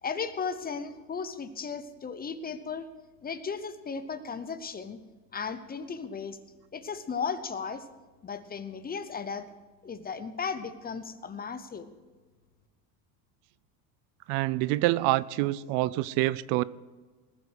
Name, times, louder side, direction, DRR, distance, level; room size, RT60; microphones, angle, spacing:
voice 1, 0.0-2.9 3.2-5.0 5.3-6.4 6.7-7.9 8.2-9.4 9.8-11.9, left 5 dB, 20° left, 11 dB, 0.8 m, -35 dB
voice 2, 14.3-16.6, right 18 dB, 65° right, 20 dB, 0.6 m, -26 dB
19.5 x 7.9 x 6.3 m, 1.4 s
supercardioid pair, 130°, 47 cm